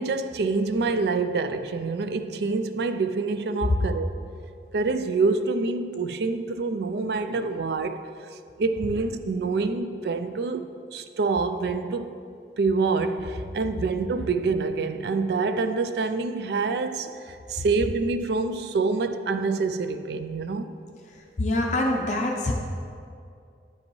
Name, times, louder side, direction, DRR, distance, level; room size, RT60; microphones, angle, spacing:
voice 1, 0.0-4.1 4.7-8.1 8.6-12.2 12.6-20.7, right 4 dB, 65° right, 10 dB, 0.3 m, -26 dB
voice 2, 21.4-22.5, left 1 dB, 40° left, 1 dB, 0.5 m, -24 dB
9.3 x 5.2 x 3.1 m, 2.4 s
head